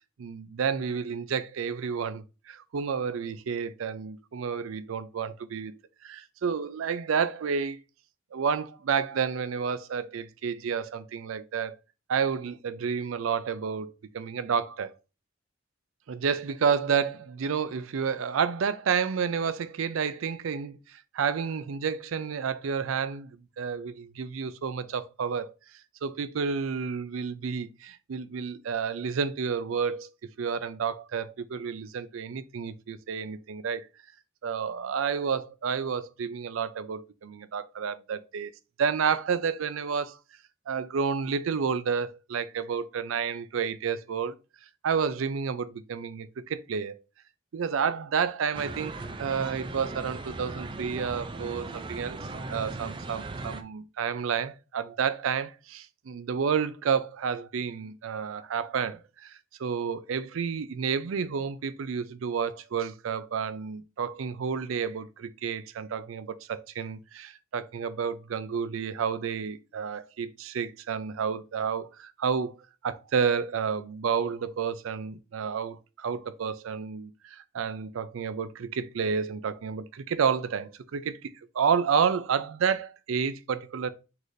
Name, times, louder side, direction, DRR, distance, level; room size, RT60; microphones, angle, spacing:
voice 1, 0.2-5.7 6.0-7.8 8.3-11.8 12.1-14.9 16.1-23.3 23.6-25.5 26.0-30.1 30.4-33.8 34.4-38.5 38.8-40.2 40.7-44.3 44.8-47.0 47.5-48.9 49.2-52.2 52.5-72.6 72.8-83.9, right 6 dB, 90° right, 0.4 m, -30 dB
sound 1, 48.5-53.6, right 2 dB, 25° right, 0.4 m, -38 dB
4.8 x 4.0 x 2.5 m
head